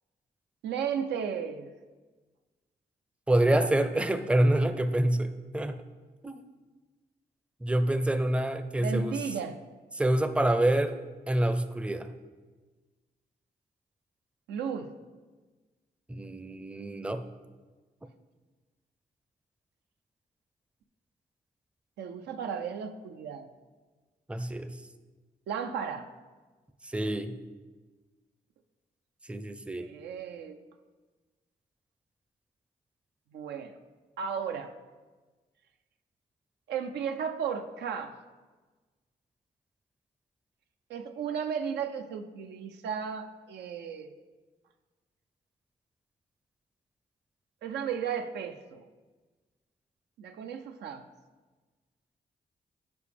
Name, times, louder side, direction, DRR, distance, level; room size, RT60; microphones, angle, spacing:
voice 1, 0.6-1.7 8.8-9.6 14.5-14.9 22.0-23.5 25.5-26.1 29.7-30.6 33.3-33.8 34.2-34.7 36.7-38.2 40.9-44.1 47.6-48.9 50.2-51.0, right 7 dB, 90° right, 6 dB, 0.4 m, -34 dB
voice 2, 3.3-5.8 6.2-6.4 7.6-9.2 10.0-11.0 11.3-12.1 16.1-17.2 24.3-24.8 26.8-27.4 29.3-29.9, right 1 dB, 5° right, 10 dB, 0.4 m, -27 dB
6.8 x 4.8 x 3.3 m, 1.3 s
supercardioid pair, 50°, 17 cm